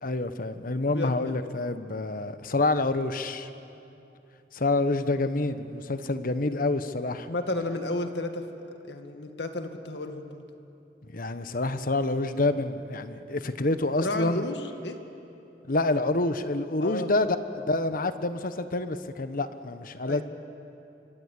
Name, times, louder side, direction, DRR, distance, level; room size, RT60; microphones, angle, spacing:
voice 1, 0.0-3.5 4.5-7.3 11.1-14.4 15.7-17.3 17.5-20.2, left 2 dB, 55° left, 11 dB, 1.2 m, -27 dB
voice 2, 0.9-1.3 7.3-10.4 14.0-15.0 16.8-17.3 20.0-20.2, left 2 dB, 75° left, 6 dB, 2.0 m, -33 dB
25.0 x 25.0 x 8.4 m, 2.8 s
head